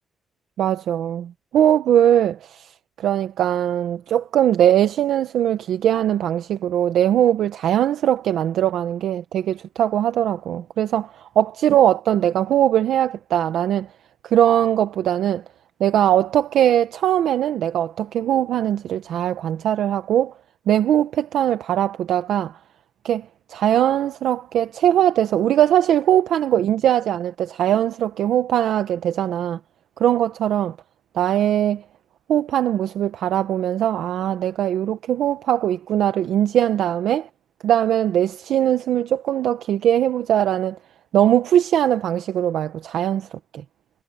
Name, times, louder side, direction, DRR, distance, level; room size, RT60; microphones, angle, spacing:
voice 1, 0.6-2.7 3.0-13.9 14.3-15.4 15.8-20.3 20.7-22.5 23.0-23.2 23.5-29.6 30.0-30.7 31.1-31.8 32.3-37.3 37.6-40.8 41.1-43.3 43.5-43.6, right 11 dB, 80° right, 0.9 m, -20 dB
cardioid pair, 145°, 0 cm